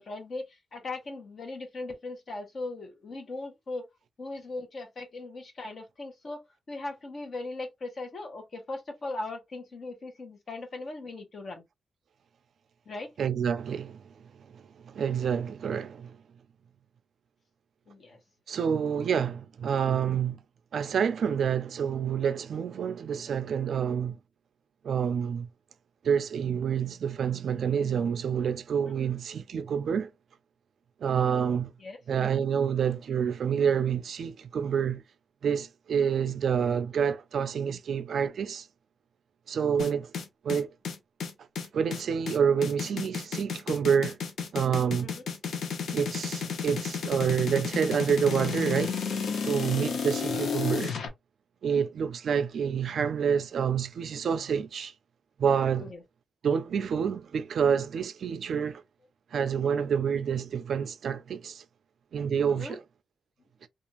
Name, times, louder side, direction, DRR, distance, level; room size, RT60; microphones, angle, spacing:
voice 1, 0.0-3.9 4.2-6.4 6.7-11.6 12.9-13.1 17.9-18.2 28.9-29.1 31.8-32.0 45.0-45.2 50.5-50.6 55.8-56.0 62.4-62.8, left 2 dB, 40° left, 0.9 m, -39 dB
voice 2, 13.2-14.0 14.5-16.2 18.5-20.4 20.7-24.2 24.8-25.5 26.0-30.1 31.0-31.7 32.1-35.0 35.4-38.7 39.5-40.1 40.4-40.7 41.7-44.2 44.5-45.1 45.9-49.0 49.4-51.0 51.6-54.9 55.4-55.9 56.4-58.8 59.3-61.6 62.1-62.8, right 7 dB, 60° right, 0.3 m, -28 dB
sound 1, 39.8-51.1, left 6 dB, 80° left, 0.7 m, -32 dB
2.5 x 2.4 x 2.9 m
wide cardioid pair, 175°, 0 cm